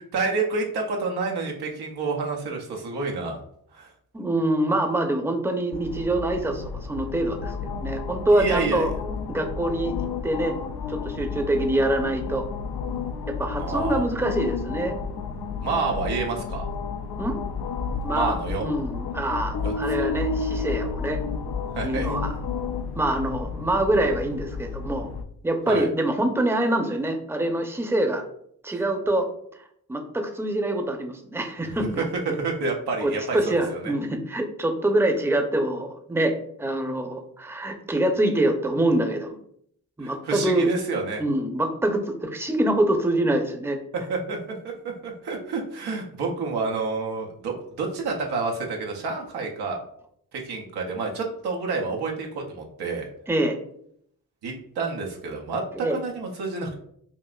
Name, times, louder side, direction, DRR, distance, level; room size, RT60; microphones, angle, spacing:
voice 1, 0.1-3.4 3.7-3.9 8.3-8.9 13.6-14.0 15.6-16.7 18.1-18.7 19.6-20.1 21.7-22.1 25.7-25.9 32.2-33.9 40.0-41.2 44.1-44.4 44.6-44.7 45.0-49.8 50.3-53.1 54.4-56.7, right 4 dB, 85° right, 1 dB, 0.8 m, -29 dB
voice 2, 4.1-8.9 9.3-10.6 10.9-12.5 13.3-14.9 17.2-17.4 18.0-18.3 18.6-21.2 21.8-22.3 23.0-25.1 25.4-28.2 28.6-29.3 29.9-32.0 33.0-39.4 40.0-40.7 41.2-43.8 53.3-53.6 55.7-56.0, right 1 dB, 5° right, 4 dB, 0.7 m, -25 dB
sound 1, 5.7-25.2, left 5 dB, 75° left, 0.5 m, -31 dB
5.4 x 2.4 x 2.4 m, 0.68 s
supercardioid pair, 45°, 38 cm